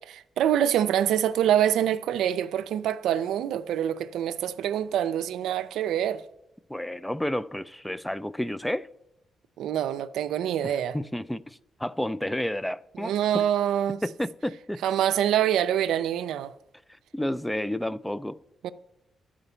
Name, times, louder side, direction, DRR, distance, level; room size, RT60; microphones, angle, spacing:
voice 1, 0.1-6.2 9.6-11.0 13.0-14.0 14.8-16.5 18.6-18.7, right 10 dB, 85° right, 0.4 m, -25 dB
voice 2, 6.7-8.9 10.6-13.4 14.0-14.8 17.1-18.4, left 1 dB, 5° left, 0.3 m, -31 dB
11.0 x 5.0 x 6.7 m
cardioid pair, 80°, 0 cm